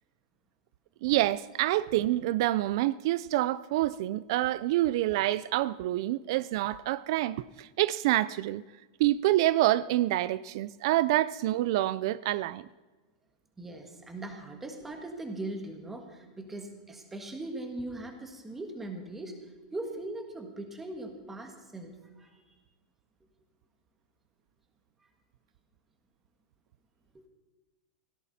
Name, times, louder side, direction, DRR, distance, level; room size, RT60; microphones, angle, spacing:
voice 1, 1.0-8.6 9.0-12.7, right 15 dB, 45° right, 0.4 m, -27 dB
voice 2, 13.6-19.4 19.7-22.4 27.1-27.2, right 2 dB, 5° right, 1.6 m, -40 dB
17.0 x 16.5 x 4.2 m
supercardioid pair, 175°, 3 cm